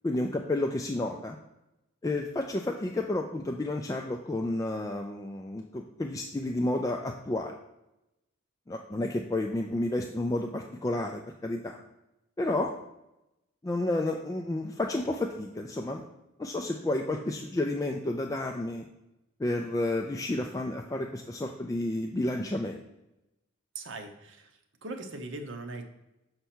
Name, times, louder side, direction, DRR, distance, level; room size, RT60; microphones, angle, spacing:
voice 1, 0.0-1.4 2.0-7.5 8.7-11.8 12.4-12.7 13.6-16.0 16.4-18.8 19.4-22.8, left 2 dB, 15° left, 2 dB, 0.3 m, -31 dB
voice 2, 23.7-24.5 24.8-25.9, right 2 dB, 65° right, 5 dB, 0.8 m, -40 dB
6.7 x 4.6 x 4.3 m, 0.93 s
head